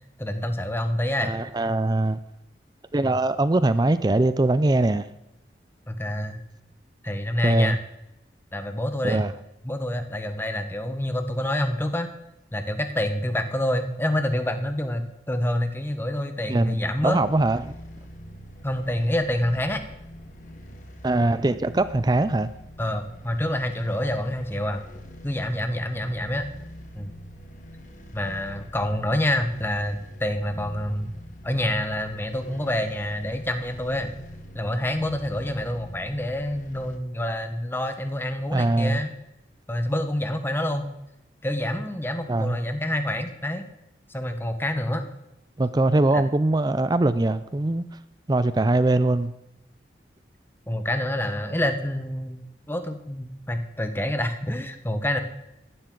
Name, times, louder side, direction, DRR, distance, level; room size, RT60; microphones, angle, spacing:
voice 1, 0.2-1.3 3.0-3.1 5.9-6.4 7.0-7.8 8.5-9.2 9.6-12.1 12.5-17.2 18.6-19.8 22.8-24.8 25.2-26.4 26.9-27.1 28.1-31.1 31.4-34.1 34.5-39.1 39.7-40.9 41.4-43.7 44.1-45.1 46.1-46.2 48.6-48.7 50.7-52.4 52.7-55.2, left 1 dB, 15° left, 1.1 m, -27 dB
voice 2, 1.2-2.2 2.9-5.1 7.4-7.8 9.0-9.3 16.5-17.7 21.0-22.5 38.5-39.0 42.3-42.6 45.6-47.9 48.3-49.3, right 2 dB, 25° right, 0.4 m, -22 dB
sound 1, 17.0-37.0, equal, 45° left, 1.7 m, -44 dB
15.5 x 12.0 x 3.9 m
head